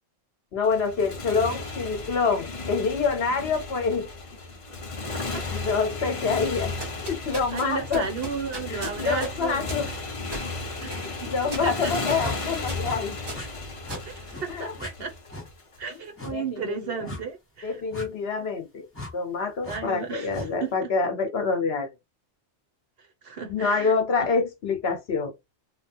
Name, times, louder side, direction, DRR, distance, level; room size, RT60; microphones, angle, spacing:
voice 1, 0.5-4.1 5.1-6.7 7.1-8.1 8.7-9.9 10.9-13.2 14.5-14.7 16.3-16.7 17.6-18.9 19.1-21.9 23.5-25.3, left 4 dB, 65° left, 1.1 m, -26 dB
Motorcycle, 0.6-15.8, left 3 dB, 35° left, 0.6 m, -35 dB
voice 2, 5.1-5.6 7.5-9.6 10.8-11.9 14.0-15.1 15.8-17.8 19.7-20.7 23.2-24.0, right 6 dB, 60° right, 1.0 m, -34 dB
sound 1, 6.8-15.0, right 1 dB, 25° right, 0.9 m, -39 dB
sound 2, 11.5-11.7 12.2-12.4 12.8-13.0 13.3-13.5 13.8-14.0 14.3-14.5 14.8-14.9 15.3-15.5 16.2-16.3 17.0-17.2 17.9-18.1 18.9-19.1 19.6-19.8 20.3-20.5, left 2 dB, 10° left, 1.0 m, -37 dB
3.1 x 2.4 x 2.7 m
omnidirectional pair, 1.2 m